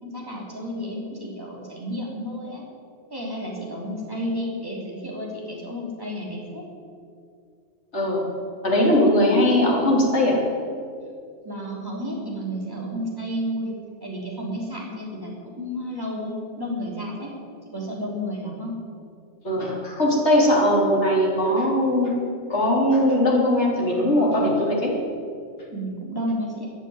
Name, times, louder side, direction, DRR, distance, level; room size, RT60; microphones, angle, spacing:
voice 1, 0.0-2.6 3.1-6.6 11.4-13.7 14.0-17.3 17.7-18.7 25.7-26.7, equal, 20° right, -3 dB, 3.4 m, -31 dB
voice 2, 7.9-8.4 8.6-10.4 19.4-22.2 22.5-24.9, left 1 dB, 65° left, -2 dB, 3.4 m, -20 dB
14.5 x 9.1 x 9.6 m, 2.4 s
omnidirectional pair, 1.3 m